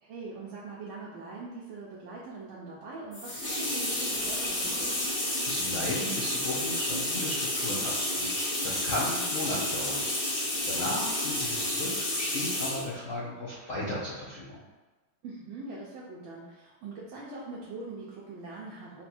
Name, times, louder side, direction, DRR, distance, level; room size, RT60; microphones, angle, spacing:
voice 1, 0.0-5.0 10.8-11.0 15.2-19.0, right 3 dB, 80° right, -6 dB, 1.5 m, -42 dB
sound 1, 3.1-12.9, left 1 dB, 35° left, 0.8 m, -30 dB
voice 2, 5.5-10.3 10.6-14.6, left 1 dB, 65° left, -8 dB, 0.8 m, -35 dB
4.4 x 2.2 x 4.2 m, 1.2 s
omnidirectional pair, 2.2 m